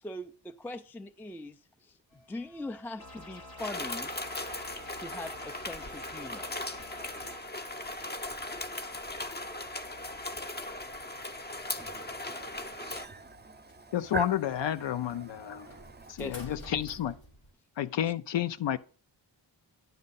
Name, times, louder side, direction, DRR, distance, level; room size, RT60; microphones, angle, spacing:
voice 1, 0.0-2.0 2.3-4.1 5.0-6.6 16.2-16.6, left 1 dB, 5° left, 0.3 m, -41 dB
sound 1, 2.1-17.5, equal, 90° left, 3.2 m, -55 dB
sound 2, 3.0-7.4, left 1 dB, 55° left, 1.4 m, -49 dB
sound 3, 3.6-13.1, left 2 dB, 20° left, 0.7 m, -38 dB
voice 2, 11.8-16.2, right 3 dB, 25° right, 0.7 m, -43 dB
voice 3, 13.9-14.4 14.6-15.7 16.1-17.1 17.8-18.8, left 10 dB, 70° left, 0.6 m, -30 dB
10.5 x 6.4 x 4.1 m
cardioid pair, 75°, 45 cm